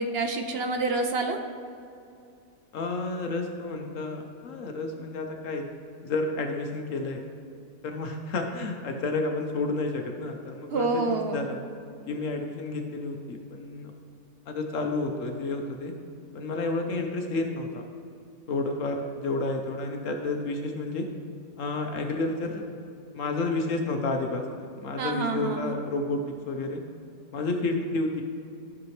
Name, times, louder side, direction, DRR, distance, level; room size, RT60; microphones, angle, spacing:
voice 1, 0.0-1.4 10.7-11.4 25.0-25.7, right 3 dB, 55° right, 5 dB, 0.8 m, -27 dB
voice 2, 2.7-5.7 6.0-7.2 7.8-11.6 12.1-13.9 14.5-15.9 16.3-17.8 18.5-21.1 21.6-22.6 23.1-26.2 26.5-26.8 27.3-28.2, left 2 dB, 65° left, 3 dB, 1.1 m, -30 dB
13.5 x 6.0 x 3.2 m, 2.6 s
omnidirectional pair, 1.5 m